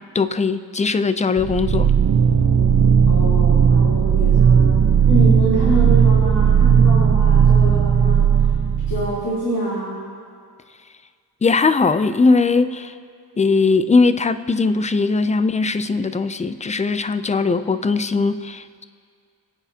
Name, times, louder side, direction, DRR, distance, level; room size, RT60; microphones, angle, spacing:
voice 1, 0.0-1.9 11.4-12.9 13.4-18.8, left 4 dB, 20° left, 12 dB, 0.4 m, -19 dB
sound 1, 1.4-9.2, right 7 dB, 50° right, 0.8 m, -15 dB
voice 2, 3.1-8.3 8.9-10.0, equal, 65° left, -10 dB, 3.4 m, -26 dB
25.0 x 9.1 x 2.8 m, 2.1 s
wide cardioid pair, 100°, 39 cm